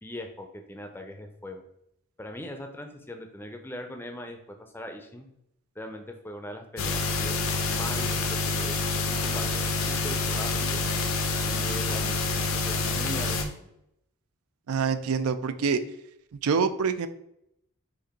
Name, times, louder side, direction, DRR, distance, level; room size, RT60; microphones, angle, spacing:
voice 1, 0.0-1.6 2.2-5.3 5.8-8.8 9.1-10.8 11.4-13.7, left 1 dB, 10° left, 5 dB, 0.4 m, -40 dB
sound 1, 6.8-13.4, left 3 dB, 75° left, 0.7 m, -27 dB
voice 2, 14.7-15.8 16.4-17.1, right 5 dB, 85° right, 11 dB, 0.4 m, -25 dB
5.2 x 2.6 x 4.0 m, 0.78 s
head